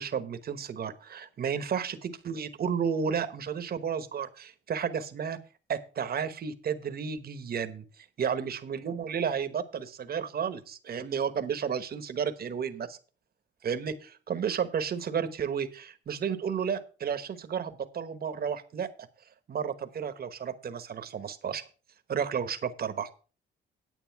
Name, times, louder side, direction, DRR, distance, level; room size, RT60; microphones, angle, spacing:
voice 1, 0.0-5.4 5.7-13.0 13.6-18.9 19.5-21.6 22.1-23.1, right 7 dB, 50° right, 11 dB, 1.2 m, -32 dB
9.4 x 8.6 x 4.7 m, 0.36 s
cardioid pair, 90°, 20 cm